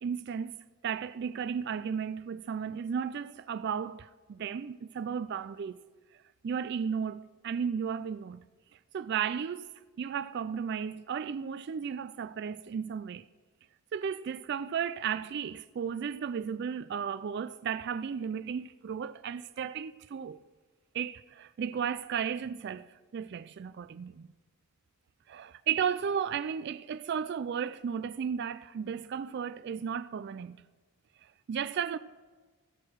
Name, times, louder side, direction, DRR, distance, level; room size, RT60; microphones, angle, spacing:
voice 1, 0.0-5.8 6.4-8.4 8.9-13.3 13.9-20.4 20.9-24.3 25.3-30.6 31.5-32.0, right 7 dB, 50° right, 0.3 m, -34 dB
16.0 x 6.6 x 6.2 m
head